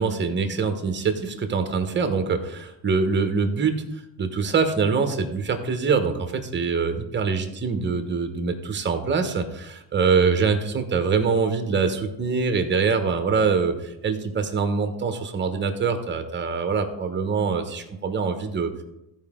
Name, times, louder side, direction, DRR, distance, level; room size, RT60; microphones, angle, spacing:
voice 1, 0.0-3.8 4.2-18.8, right 5 dB, 25° right, 7 dB, 1.1 m, -24 dB
14.5 x 5.0 x 3.7 m, 0.91 s
cardioid pair, 125°, 44 cm